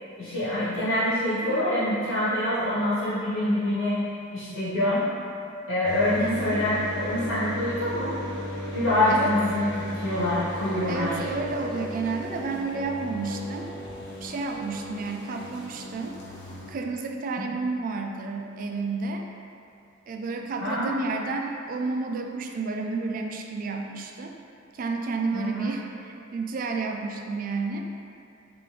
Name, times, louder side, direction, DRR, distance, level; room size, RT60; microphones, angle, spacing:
voice 1, 0.2-4.0 4.3-5.0 5.7-8.1 8.7-11.1 17.4-17.5 20.6-20.9 25.3-25.7, left 1 dB, 90° left, -12 dB, 1.3 m, -25 dB
sound 1, 5.8-16.7, left 1 dB, 60° left, 0.9 m, -36 dB
voice 2, 6.2-6.7 9.1-9.4 10.8-13.8 14.2-16.2 16.7-19.3 20.1-24.3 24.7-27.9, right 3 dB, 45° right, 3 dB, 0.3 m, -31 dB
3.4 x 3.3 x 3.4 m, 2.5 s
head